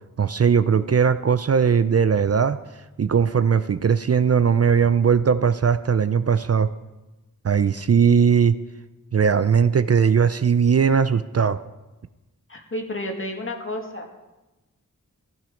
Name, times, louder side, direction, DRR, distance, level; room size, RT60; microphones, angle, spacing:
voice 1, 0.2-2.6 3.0-6.7 7.4-8.6 9.1-11.6, right 6 dB, 45° right, 13 dB, 0.5 m, -19 dB
voice 2, 12.5-14.0, left 1 dB, 40° left, 2 dB, 2.1 m, -31 dB
15.5 x 10.5 x 5.1 m, 1.1 s
wide cardioid pair, 90°, 34 cm